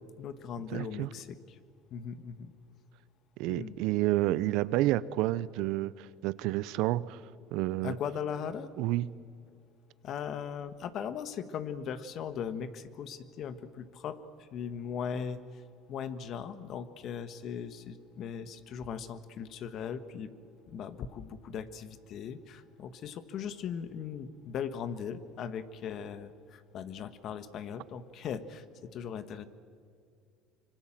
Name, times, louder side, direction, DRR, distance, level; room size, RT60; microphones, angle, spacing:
voice 1, 0.2-1.6 1.9-2.5 3.5-3.8 7.8-8.7 10.0-15.4 15.9-20.3 20.7-29.5, left 7 dB, 55° left, 12 dB, 1.5 m, -39 dB
voice 2, 0.7-1.1 3.4-7.2 7.5-8.0 8.8-9.1, right 16 dB, 75° right, 19 dB, 0.7 m, -29 dB
25.5 x 24.0 x 7.5 m, 2.4 s
supercardioid pair, 95°, 0 cm